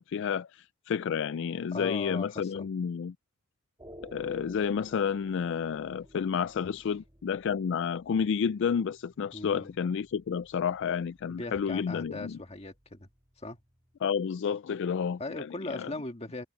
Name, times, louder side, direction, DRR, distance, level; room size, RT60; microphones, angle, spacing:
voice 1, 0.0-3.1 4.0-12.4 14.0-15.5 15.7-15.9, left 7 dB, 55° left, 0.3 m, -30 dB
voice 2, 1.7-2.7 9.3-9.7 11.3-13.1 13.4-13.6 15.2-16.5, left 2 dB, 30° left, 1.7 m, -39 dB
sound 1, 3.8-14.0, equal, 20° right, 2.0 m, -55 dB
head